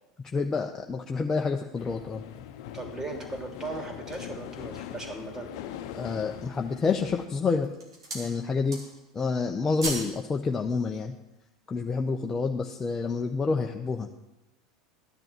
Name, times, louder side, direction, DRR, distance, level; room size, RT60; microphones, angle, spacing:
voice 1, 0.3-2.2 5.9-7.7 8.1-8.8 9.1-11.1 11.7-14.1, left 4 dB, 20° left, 2 dB, 0.9 m, -28 dB
sound 1, 1.7-7.3, left 11 dB, 60° left, 0.9 m, -41 dB
voice 2, 2.7-5.5, right 3 dB, 20° right, 2 dB, 3.1 m, -37 dB
sound 2, 3.4-4.4 5.0-5.1 5.6-6.1 6.8-7.2 7.5-8.3 8.6-9.1 9.4-10.2 10.5-10.6, right 2 dB, 85° right, 3.6 m, -37 dB
13.5 x 10.5 x 4.6 m, 0.97 s
hypercardioid pair, 80°, 3 cm